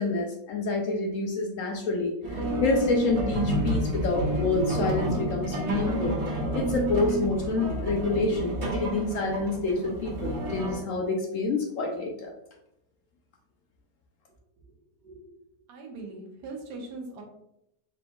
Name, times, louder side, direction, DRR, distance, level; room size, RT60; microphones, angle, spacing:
voice 1, 0.0-6.2 6.5-12.3, left 3 dB, 70° left, 1 dB, 0.8 m, -28 dB
sound 1, 2.2-10.8, right 1 dB, 55° right, 1.2 m, -29 dB
voice 2, 14.6-15.2 15.7-17.2, right 3 dB, 85° right, 2 dB, 1.4 m, -41 dB
4.0 x 3.6 x 2.2 m, 0.82 s
omnidirectional pair, 1.7 m